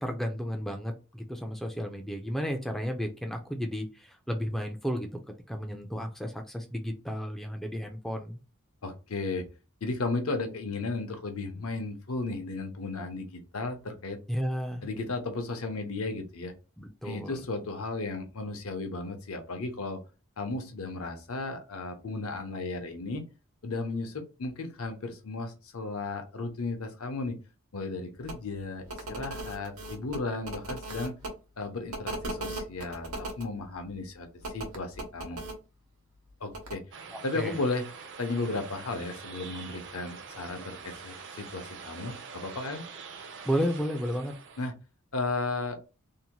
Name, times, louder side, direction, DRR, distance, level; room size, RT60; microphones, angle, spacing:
voice 1, 0.0-5.1 5.5-8.4 14.3-14.9 16.8-17.4 37.1-37.6 43.4-44.3, equal, ahead, 3 dB, 0.3 m, -33 dB
voice 2, 8.8-9.5 9.8-14.2 14.8-16.5 17.0-20.0 20.4-23.2 23.6-27.4 27.7-31.1 31.6-35.4 36.4-36.8 37.2-37.9 38.2-42.8 44.6-44.7 45.1-45.8, left 3 dB, 70° left, 6 dB, 0.7 m, -34 dB
sound 1, 28.2-28.4 28.9-31.3 31.9-33.4 34.4-35.5 36.5-36.7, right 2 dB, 80° right, 0.9 m, -37 dB
sound 2, 36.9-44.7, right 5 dB, 55° right, 0.5 m, -45 dB
2.7 x 2.1 x 2.9 m, 0.32 s
head